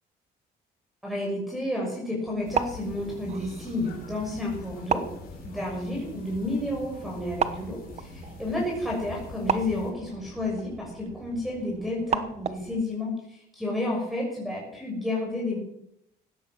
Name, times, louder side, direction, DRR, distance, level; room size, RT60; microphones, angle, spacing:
voice 1, 1.0-5.1 5.4-15.6, left 1 dB, ahead, -4 dB, 6.1 m, -31 dB
sound 1, 2.3-12.8, right 7 dB, 40° right, 1.1 m, -35 dB
sound 2, 2.4-9.9, left 5 dB, 60° left, 4.4 m, -44 dB
16.5 x 12.0 x 6.1 m, 0.77 s
cardioid pair, 110°, 17 cm